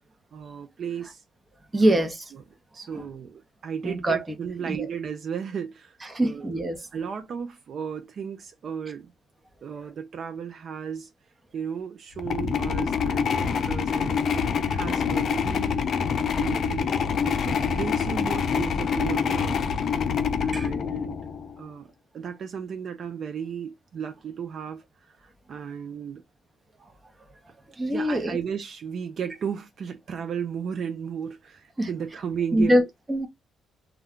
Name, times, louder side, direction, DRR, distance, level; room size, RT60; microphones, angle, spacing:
voice 1, 0.3-1.2 1.8-2.0 2.3-2.4 2.7-6.0 6.2-6.5 6.9-9.1 9.6-11.1 11.5-15.8 16.4-16.9 17.2-19.6 20.4-21.2 21.6-21.9 22.1-24.8 25.2-26.2 27.9-32.9, right 7 dB, 55° right, 0.5 m, -34 dB
voice 2, 1.7-2.3 2.9-3.0 3.8-4.2 4.7-4.9 6.1-6.8 20.5-20.7 27.8-28.4 31.8-31.9 32.5-33.3, right 1 dB, 20° right, 0.7 m, -23 dB
sound 1, 12.2-21.5, left 6 dB, 60° left, 0.4 m, -26 dB
2.3 x 2.2 x 3.6 m
cardioid pair, 90°, 0 cm